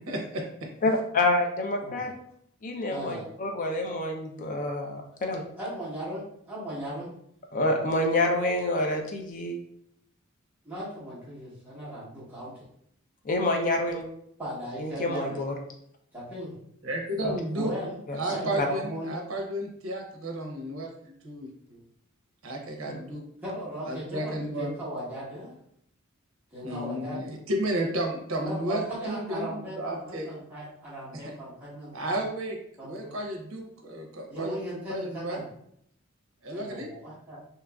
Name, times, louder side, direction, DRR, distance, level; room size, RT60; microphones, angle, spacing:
voice 1, 0.1-0.7 16.8-17.7 18.1-21.5 22.4-23.2 23.9-24.7 26.6-30.3 31.9-34.6 34.9-35.4 36.4-36.9, right 1 dB, 75° right, 1 dB, 0.6 m, -33 dB
voice 2, 0.8-2.1 2.6-5.4 7.5-9.6 13.3-14.0 14.8-15.5 17.2-17.4 18.1-18.2 18.6-18.7 22.9-23.0, left 2 dB, 40° left, 2 dB, 0.5 m, -27 dB
voice 3, 2.9-3.2 5.6-7.1 10.6-12.6 14.4-15.4 16.1-16.5 17.5-18.0 18.3-19.1 21.6-21.8 23.4-25.5 26.5-27.2 28.4-32.2 32.8-32.9 34.3-35.4 36.5-37.4, right 1 dB, 10° right, -9 dB, 1.0 m, -37 dB
2.9 x 2.4 x 2.3 m, 0.70 s
head